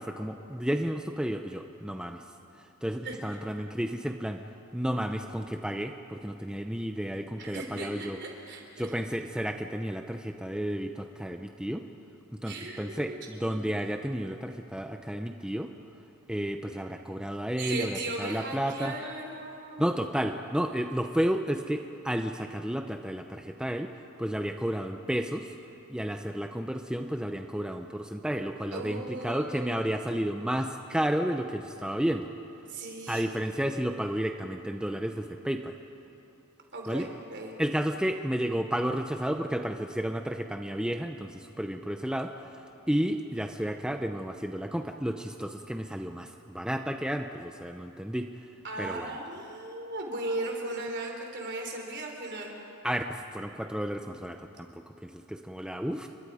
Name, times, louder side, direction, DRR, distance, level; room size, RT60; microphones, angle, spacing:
voice 1, 0.0-2.2 2.8-4.4 4.7-8.2 8.8-11.8 12.3-15.7 16.3-19.0 19.8-23.9 24.2-25.5 25.9-32.3 33.1-35.7 36.9-37.1 37.6-48.3 48.8-49.1 52.8-56.1, equal, 5° right, 5 dB, 0.6 m, -32 dB
voice 2, 7.4-8.9 12.5-13.2 17.6-19.9 28.7-29.9 32.7-33.3 36.7-37.5 48.6-52.5, right 2 dB, 55° right, 1 dB, 3.8 m, -37 dB
30.0 x 23.0 x 5.0 m, 2.8 s
head